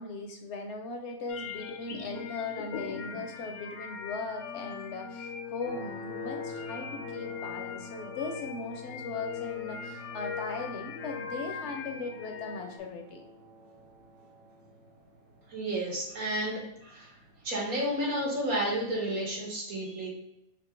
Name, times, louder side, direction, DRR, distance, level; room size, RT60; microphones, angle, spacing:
voice 1, 0.0-13.3, left 3 dB, 65° left, 3 dB, 0.8 m, -38 dB
sound 1, 1.3-12.8, left 7 dB, 80° left, 1.2 m, -40 dB
sound 2, 5.6-19.5, equal, 55° right, 1.2 m, -49 dB
voice 2, 15.5-17.1 17.4-20.1, right 1 dB, 80° right, -4 dB, 2.0 m, -31 dB
4.4 x 2.4 x 4.5 m, 0.85 s
omnidirectional pair, 1.5 m